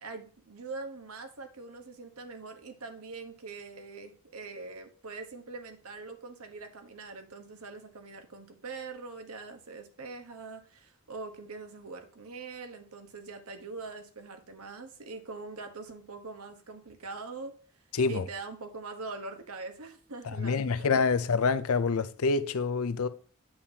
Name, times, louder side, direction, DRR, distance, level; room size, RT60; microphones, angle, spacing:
voice 1, 0.0-17.5 18.1-20.9, right 3 dB, 80° right, 1.2 m, -43 dB
voice 2, 17.9-18.2 20.3-23.1, left 4 dB, 75° left, 0.5 m, -27 dB
8.5 x 7.3 x 2.8 m
head